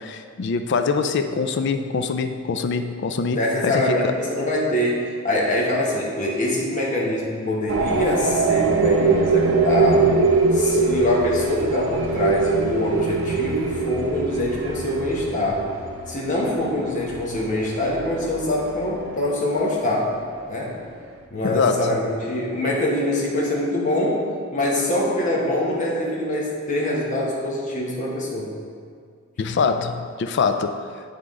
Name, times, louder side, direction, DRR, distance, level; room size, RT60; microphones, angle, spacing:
voice 1, 0.0-4.1 21.4-22.0 29.4-30.7, left 5 dB, 60° left, 8 dB, 0.4 m, -24 dB
voice 2, 3.3-10.2 10.5-15.6 16.1-20.1 20.4-20.8 21.3-24.2 24.5-28.5, left 1 dB, 40° left, -4 dB, 1.2 m, -24 dB
sound 1, 7.7-19.3, right 4 dB, 75° right, 0.7 m, -23 dB
9.4 x 3.6 x 3.7 m, 2.1 s
head